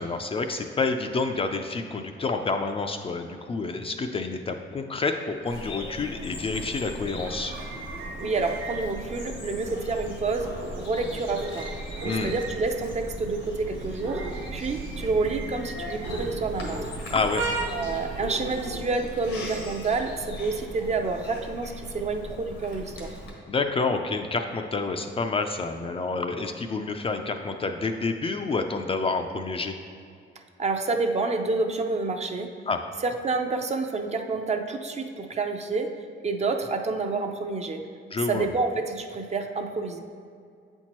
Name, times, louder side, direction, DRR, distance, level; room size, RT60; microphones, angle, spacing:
voice 1, 0.0-7.5 12.0-12.3 17.1-17.4 23.5-29.8 32.7-32.8 38.1-38.5, left 3 dB, 30° left, 5 dB, 0.4 m, -28 dB
Bird vocalization bird call bird song, 5.5-23.3, left 1 dB, 85° left, 1.3 m, -39 dB
sound 1, 6.5-18.9, right 3 dB, 75° right, 0.8 m, -37 dB
voice 2, 8.2-11.7 12.0-14.2 14.5-16.8 17.7-23.1 30.6-32.5 33.0-35.9 36.2-37.8 38.3-40.0, right 3 dB, 35° right, 5 dB, 0.5 m, -28 dB
8.0 x 4.4 x 3.0 m, 2.4 s
cardioid pair, 90°, 20 cm